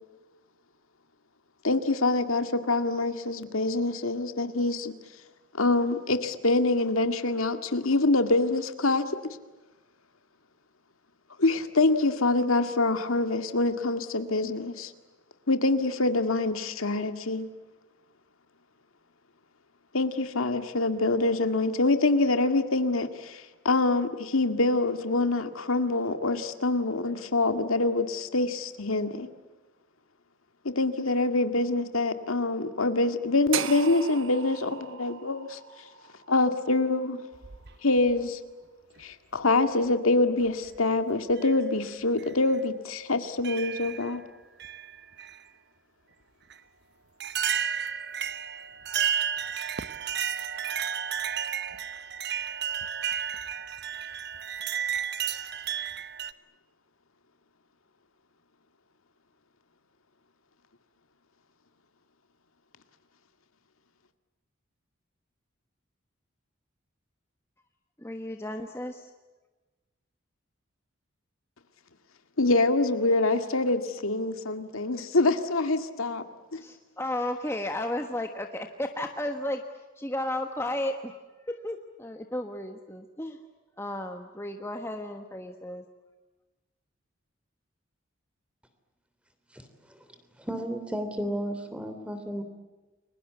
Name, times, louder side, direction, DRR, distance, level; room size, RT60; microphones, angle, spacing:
voice 1, 1.6-4.9 5.6-9.1 11.4-14.9 15.5-17.5 19.9-29.3 30.6-35.6 36.3-37.2 37.8-38.4 39.0-44.2 72.4-76.2 76.5-76.6, left 2 dB, 90° left, 8 dB, 2.0 m, -25 dB
sound 1, 33.5-37.6, right 8 dB, 75° right, 1.2 m, -37 dB
sound 2, 37.3-38.2 39.3-39.4 40.5-40.8 41.4-41.5 42.2-42.3 43.4-44.2 44.6-45.4 46.5-46.6 47.2-56.3, right 8 dB, 50° right, 1.0 m, -32 dB
voice 2, 68.0-69.1 76.6-79.6 80.0-81.2 81.5-83.4 83.8-85.8, left 1 dB, 10° left, 5 dB, 1.3 m, -33 dB
voice 3, 89.5-90.0 90.4-92.4, equal, 5° right, 8 dB, 3.1 m, -34 dB
30.0 x 23.0 x 8.2 m, 1.2 s
head